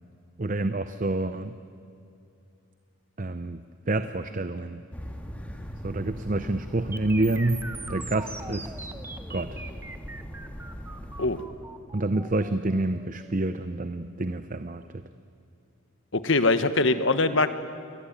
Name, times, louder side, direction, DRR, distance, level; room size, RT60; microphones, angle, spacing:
voice 1, 0.4-1.5 3.2-4.8 5.8-7.6 7.9-8.7 9.3-9.6 11.9-15.0, right 2 dB, 40° right, 11 dB, 0.7 m, -28 dB
sound 1, 4.9-11.4, equal, 5° left, 2.0 m, -40 dB
sound 2, 6.9-14.9, right 3 dB, 10° right, 1.0 m, -42 dB
voice 2, 16.1-17.5, left 3 dB, 65° left, 11 dB, 1.3 m, -22 dB
28.5 x 21.5 x 8.8 m, 2.7 s
head